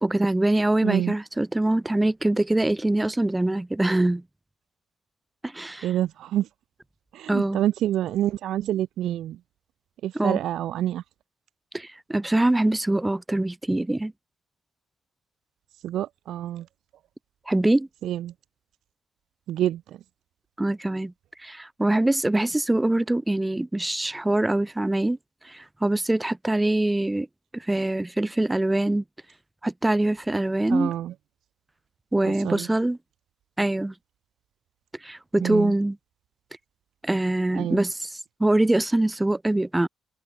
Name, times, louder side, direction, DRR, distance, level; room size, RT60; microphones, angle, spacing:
voice 1, 0.0-4.2 5.4-5.8 7.3-7.6 10.2-10.4 11.7-14.1 17.5-17.9 20.6-21.1 21.4-25.2 25.4-27.3 27.5-29.0 29.6-30.9 32.1-33.0 33.6-33.9 35.0-35.9 37.0-37.9 38.4-39.9, right 1 dB, 10° right, 0.9 m, -23 dB
voice 2, 0.8-1.1 5.8-6.5 7.1-9.4 10.0-11.0 15.8-16.7 18.0-18.3 19.5-20.0 30.7-31.1 32.2-32.7 35.4-35.7 37.5-37.8, right 12 dB, 80° right, 3.2 m, -27 dB
cardioid pair, 90°, 0 cm